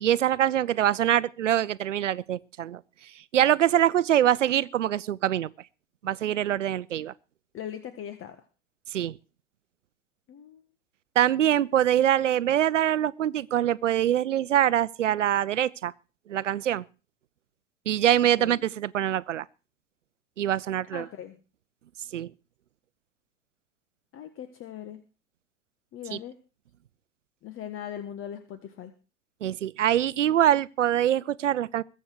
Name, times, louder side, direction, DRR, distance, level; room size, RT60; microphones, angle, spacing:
voice 1, 0.0-2.8 3.3-5.5 6.0-7.1 8.9-9.2 11.2-15.9 16.3-16.8 17.9-19.5 20.4-21.1 22.1-22.3 26.1-26.2 29.4-31.8, right 11 dB, 75° right, 0.8 m, -24 dB
voice 2, 7.5-8.4 10.3-10.7 18.2-18.6 20.8-21.4 24.1-25.0 25.9-26.3 27.4-28.9, left 10 dB, 35° left, 1.6 m, -40 dB
22.0 x 8.4 x 4.8 m
figure-of-eight pair, 85°, 37 cm